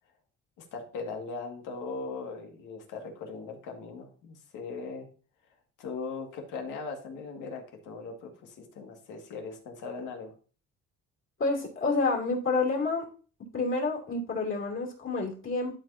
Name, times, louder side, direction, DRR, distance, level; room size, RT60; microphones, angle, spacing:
voice 1, 0.6-5.1 5.8-10.3, left 4 dB, 85° left, 3 dB, 2.0 m, -39 dB
voice 2, 11.4-13.0 13.5-15.7, left 3 dB, 40° left, 0 dB, 3.0 m, -28 dB
12.0 x 5.1 x 2.7 m, 0.38 s
cardioid pair, 115°, 30 cm